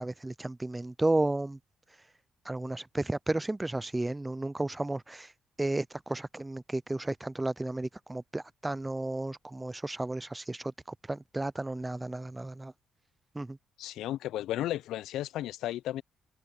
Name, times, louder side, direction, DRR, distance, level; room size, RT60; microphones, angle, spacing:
voice 1, 0.0-1.6 2.5-5.3 5.6-10.7 11.1-12.7 13.4-13.6, right 2 dB, 15° right, 0.3 m, -33 dB
voice 2, 13.8-16.0, left 13 dB, 85° left, 0.5 m, -34 dB
cardioid pair, 90°, 0 cm